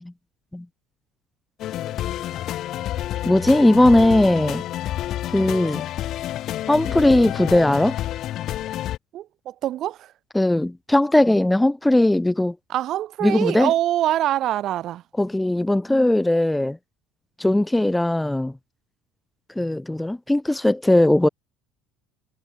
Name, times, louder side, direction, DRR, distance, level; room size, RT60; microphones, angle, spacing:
sound 1, 1.6-9.0, left 13 dB, 40° left, 2.4 m, -29 dB
voice 1, 3.2-4.6 5.3-5.9 6.7-8.0 10.3-12.5 13.2-13.7 15.2-16.8 17.4-18.5 19.5-21.3, left 1 dB, 5° left, 1.6 m, -18 dB
voice 2, 9.1-10.1 12.7-15.0, right 13 dB, 40° right, 1.8 m, -24 dB
cardioid pair, 175°, 0 cm